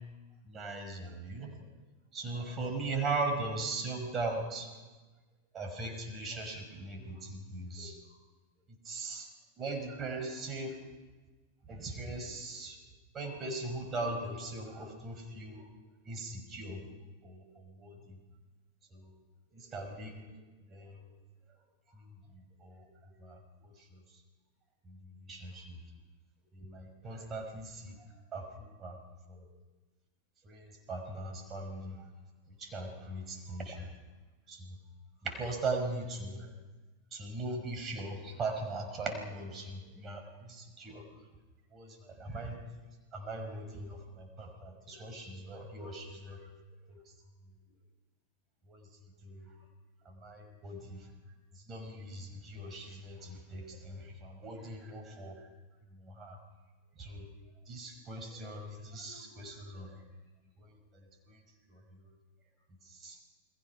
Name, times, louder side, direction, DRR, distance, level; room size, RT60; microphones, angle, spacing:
voice 1, 0.5-1.5 2.1-4.7 5.5-8.0 8.7-9.3 9.6-10.8 11.7-12.8 13.1-15.7 16.1-16.8 17.2-18.2 18.9-19.1 19.5-20.2 20.7-21.0 21.9-22.9 23.2-23.4 23.9-24.0 24.9-25.8 26.5-28.0 28.3-29.0 29.3-29.5 30.4-32.0 32.6-33.9 34.5-34.8 35.2-36.5 37.1-41.0 41.7-42.6 43.1-46.4 46.9-47.0 48.7-48.8 49.2-49.5 50.0-51.1 51.5-55.4 55.9-56.4 57.0-57.3 57.7-60.0 60.6-60.7 60.9-61.4 61.7-62.1 62.9-63.2, right 2 dB, 25° right, 4 dB, 5.4 m, -39 dB
30.0 x 21.0 x 5.8 m, 1.2 s
figure-of-eight pair, 90°, 0 cm